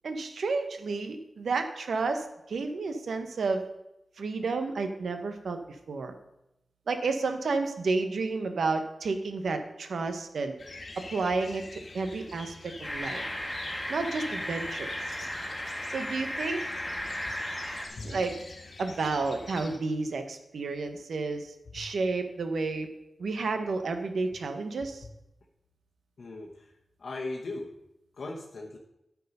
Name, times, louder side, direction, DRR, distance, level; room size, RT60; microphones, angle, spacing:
voice 1, 0.0-3.6 4.2-5.6 5.9-6.1 6.9-10.5 11.1-13.2 13.9-14.9 15.9-16.6 18.0-18.3 18.8-22.9 23.2-25.0, right 3 dB, 85° right, 7 dB, 1.0 m, -31 dB
sound 1, 10.6-19.8, left 2 dB, 50° left, 1.5 m, -45 dB
sound 2, 12.8-17.9, equal, 5° left, 1.6 m, -35 dB
voice 2, 26.2-26.7 27.0-27.7 28.2-28.8, left 2 dB, 65° left, -2 dB, 1.2 m, -38 dB
13.0 x 4.7 x 5.4 m, 0.88 s
wide cardioid pair, 150°, 0 cm